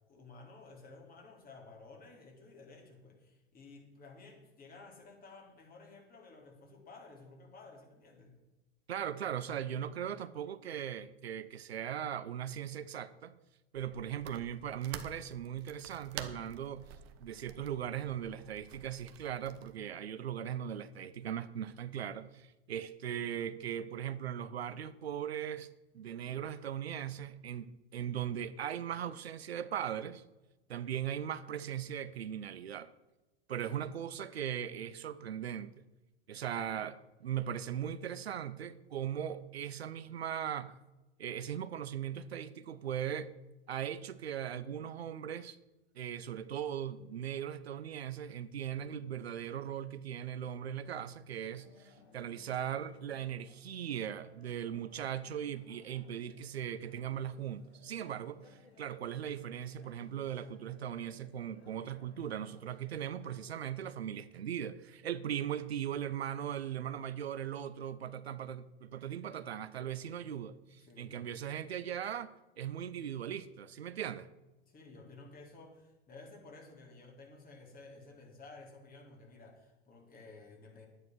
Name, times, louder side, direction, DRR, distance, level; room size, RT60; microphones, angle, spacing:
voice 1, 0.1-8.4 70.8-71.3 74.7-80.9, left 3 dB, 30° left, 3.7 m, -54 dB
voice 2, 8.9-13.3 13.7-16.9 17.2-30.2 30.7-32.9 33.5-35.8 36.3-40.8 41.2-43.3 43.7-45.6 46.0-74.3, right 9 dB, 90° right, 0.7 m, -39 dB
sound 1, 13.7-19.7, right 10 dB, 50° right, 1.3 m, -49 dB
sound 2, 51.4-63.5, left 4 dB, 90° left, 2.3 m, -63 dB
11.0 x 9.5 x 6.2 m
hypercardioid pair, 90°, 31 cm